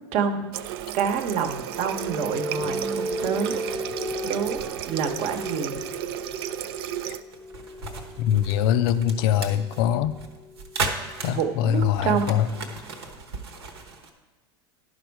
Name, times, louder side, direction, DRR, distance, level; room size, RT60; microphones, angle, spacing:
voice 1, 0.1-0.6 0.9-3.6 4.2-5.8 11.3-12.4, right 6 dB, 55° right, 7 dB, 1.0 m, -27 dB
Water tap faucet, 0.5-7.2, right 12 dB, 70° right, 0.4 m, -33 dB
sound 1, 0.8-12.3, equal, ahead, 0.4 m, -36 dB
sound 2, 2.5-14.1, right 3 dB, 90° right, 1.1 m, -37 dB
voice 2, 8.2-10.1 11.2-12.5, left 10 dB, 65° left, 13 dB, 0.4 m, -23 dB
11.0 x 5.3 x 4.6 m, 1.2 s
hypercardioid pair, 100°, 13 cm